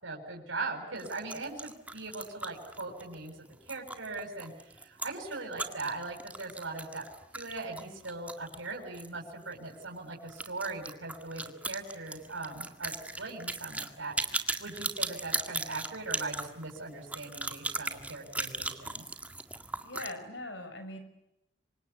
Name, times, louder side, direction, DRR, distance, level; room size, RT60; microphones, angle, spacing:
voice 1, 0.0-7.0 7.3-19.0, right 3 dB, 75° right, 0 dB, 7.3 m, -40 dB
sound 1, 1.0-9.1 9.4-9.5 9.8-9.9 10.3-20.1, right 2 dB, 5° right, 1.8 m, -38 dB
voice 2, 19.8-21.0, left 2 dB, 65° left, 8 dB, 6.0 m, -41 dB
28.0 x 25.0 x 8.5 m, 0.88 s
head